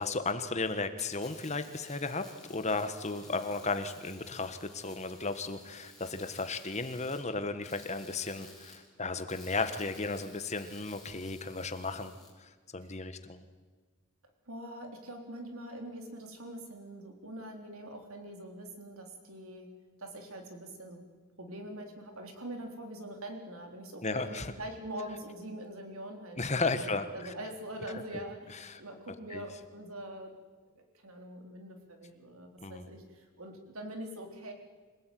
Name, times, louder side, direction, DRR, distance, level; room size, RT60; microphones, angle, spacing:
voice 1, 0.0-12.1 12.4-13.4 24.0-24.5 26.4-27.3 28.6-28.8 29.3-29.4 32.6-32.9, left 3 dB, 30° left, 9 dB, 1.5 m, -34 dB
sound 1, 0.8-12.3, left 3 dB, ahead, 6.2 m, -55 dB
voice 2, 14.5-19.7 20.0-21.0 21.4-30.3 30.7-34.5, right 1 dB, 70° right, 4 dB, 3.8 m, -44 dB
26.0 x 17.0 x 9.4 m, 1.4 s
head